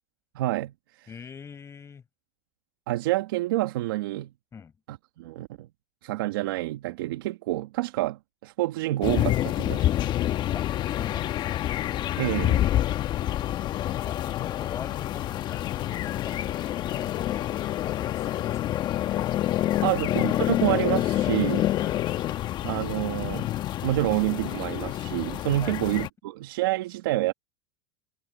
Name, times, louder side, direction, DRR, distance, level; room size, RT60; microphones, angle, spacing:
voice 1, 0.3-1.1 2.9-4.3 4.9-5.7 6.0-9.9 12.2-12.7 19.4-19.5 19.8-21.7 22.6-23.5 23.8-27.3, right 17 dB, 75° right, 1.7 m, -28 dB
voice 2, 1.1-2.0 4.5-4.7 10.5-11.7 14.0-18.6 19.7-20.2 21.8-22.0 25.6-25.8, left 6 dB, 25° left, 5.5 m, -44 dB
sound 1, 9.0-26.1, left 13 dB, 40° left, 1.1 m, -27 dB
supercardioid pair, 115°, 12 cm